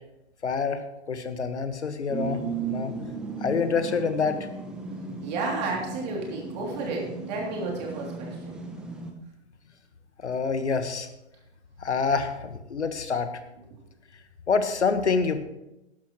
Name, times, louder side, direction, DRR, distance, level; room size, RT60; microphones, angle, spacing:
voice 1, 0.4-0.8 1.1-2.4 2.7-2.9 3.4-4.5 10.2-11.1 11.8-13.3 14.5-15.4, left 5 dB, 90° left, 9 dB, 1.5 m, -26 dB
sound 1, 2.1-9.1, right 5 dB, ahead, 0.7 m, -36 dB
voice 2, 5.2-8.6, right 3 dB, 40° right, -1 dB, 3.0 m, -32 dB
13.5 x 11.5 x 3.1 m, 0.92 s
hypercardioid pair, 145°, 33 cm